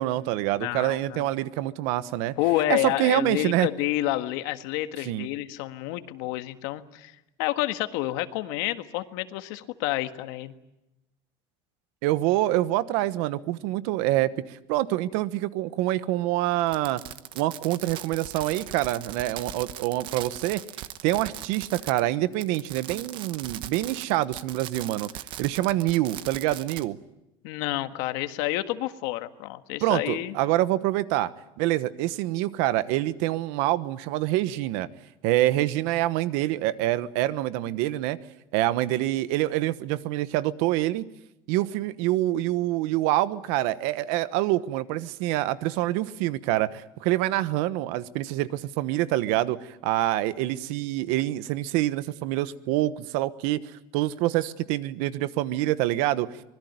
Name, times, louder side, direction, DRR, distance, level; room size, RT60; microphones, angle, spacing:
voice 1, 0.0-2.3 2.7-3.7 5.0-5.3 12.0-17.0 17.3-20.6 21.0-25.1 25.4-27.0 29.8-31.3 31.6-34.9 35.2-38.2 38.5-41.1 41.5-53.6 53.9-56.3, right 15 dB, 80° right, 15 dB, 1.2 m, -26 dB
voice 2, 0.6-1.3 2.4-7.1 7.4-10.5 27.4-30.3, left 16 dB, 85° left, 9 dB, 1.6 m, -29 dB
Fireworks, 16.7-22.1 22.3-26.8, right 12 dB, 50° right, 1.0 m, -39 dB
25.5 x 21.0 x 9.5 m, 0.91 s
cardioid pair, 165°, 11 cm